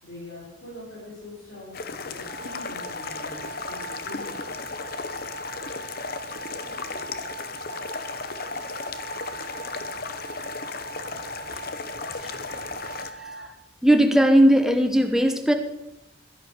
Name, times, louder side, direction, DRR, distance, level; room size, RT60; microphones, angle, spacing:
voice 1, 0.0-3.4 3.7-4.4, left 2 dB, 75° left, -7 dB, 5.8 m, -43 dB
sound 1, 1.7-13.1, left 4 dB, 50° left, 0.9 m, -35 dB
sound 2, 2.2-13.5, right 3 dB, 45° right, 1.8 m, -40 dB
voice 2, 13.8-15.5, right 1 dB, 5° right, 5 dB, 1.1 m, -17 dB
12.0 x 10.5 x 6.6 m, 0.86 s
head